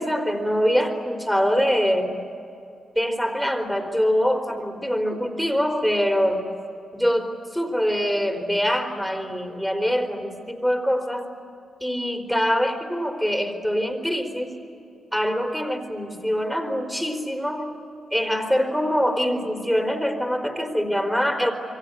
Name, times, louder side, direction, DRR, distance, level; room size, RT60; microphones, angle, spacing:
voice 1, 0.0-2.1 3.0-6.4 6.9-11.3 11.8-14.5 15.1-17.7 18.1-21.5, equal, ahead, 5 dB, 4.3 m, -24 dB
28.0 x 23.5 x 8.5 m, 2.6 s
cardioid pair, 75°, 0 cm